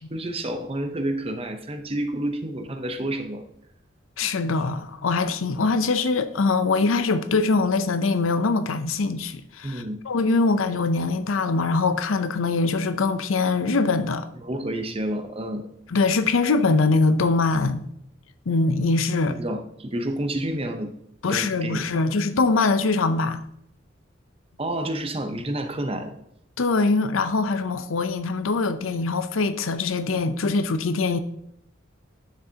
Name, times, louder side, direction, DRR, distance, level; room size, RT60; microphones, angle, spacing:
voice 1, 0.0-3.5 9.6-10.0 14.3-15.7 19.3-20.9 21.3-22.0 24.6-26.2, right 1 dB, 30° right, 0.7 m, -29 dB
voice 2, 4.2-14.3 15.9-17.8 18.5-19.4 21.2-23.4 26.6-31.2, left 3 dB, 90° left, 0.6 m, -23 dB
11.0 x 6.1 x 2.8 m
head